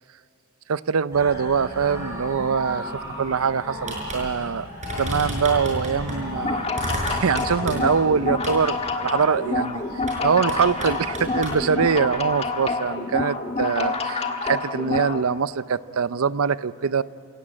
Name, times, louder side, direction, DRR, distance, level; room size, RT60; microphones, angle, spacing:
voice 1, 0.7-2.9 3.2-17.0, right 6 dB, 70° right, 17 dB, 0.6 m, -23 dB
sound 1, 1.1-12.4, left 1 dB, 15° right, 5.9 m, -38 dB
sound 2, 3.9-4.2 4.5-4.6 4.8-6.2 6.7-8.0 8.4-8.6 10.0-10.2 10.5-11.6, right 1 dB, 35° right, 6.4 m, -31 dB
sound 3, 6.3-15.2, left 3 dB, 30° left, 1.5 m, -28 dB
27.5 x 17.0 x 8.8 m, 2.6 s
head